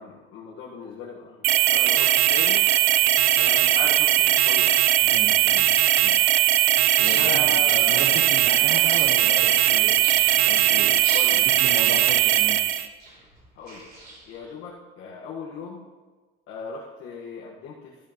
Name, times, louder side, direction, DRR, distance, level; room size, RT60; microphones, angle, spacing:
voice 1, 0.0-2.6 3.3-4.8 7.1-8.0 11.1-11.5 13.5-13.9 14.2-15.8 16.5-18.0, left 4 dB, 90° left, -5 dB, 1.4 m, -37 dB
sound 1, 1.4-12.9, right 13 dB, 80° right, 0.6 m, -19 dB
voice 2, 5.0-5.7 6.0-6.2 7.0-10.9 11.3-12.6, right 5 dB, 65° right, 2 dB, 1.1 m, -35 dB
sound 2, 7.0-14.5, right 2 dB, 50° right, 3.6 m, -42 dB
12.5 x 10.5 x 2.9 m, 1.3 s
cardioid pair, 160°, 21 cm